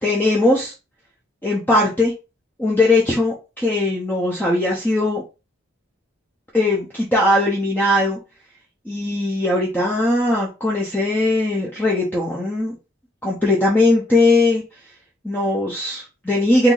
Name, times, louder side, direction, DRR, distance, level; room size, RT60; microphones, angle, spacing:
voice 1, 0.0-0.7 1.4-2.1 2.6-5.2 6.5-8.2 8.9-12.7 13.2-14.6 15.2-16.7, left 2 dB, 10° left, -4 dB, 0.6 m, -19 dB
2.9 x 2.6 x 3.8 m, 0.30 s
head